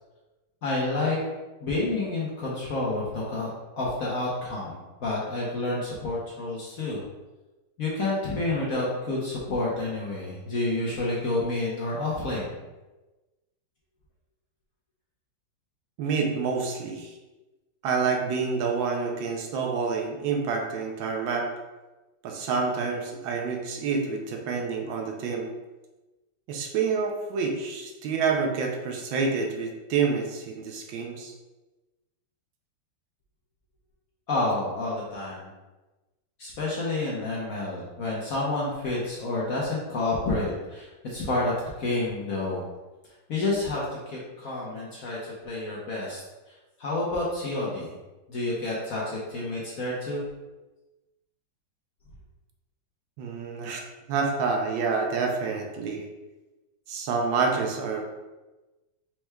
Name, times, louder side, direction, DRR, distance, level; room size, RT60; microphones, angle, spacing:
voice 1, 0.6-1.2 1.6-7.0 7.8-12.6 34.3-35.5 36.4-42.7 43.3-46.2 46.8-47.9 48.3-50.2, left 2 dB, 60° left, -5 dB, 1.0 m, -29 dB
voice 2, 16.0-17.1 17.8-21.5 22.2-25.5 26.5-31.3 53.2-53.8 54.1-56.1 56.9-58.0, right 5 dB, 75° right, 2 dB, 1.3 m, -28 dB
4.5 x 4.4 x 2.2 m, 1.1 s
omnidirectional pair, 2.2 m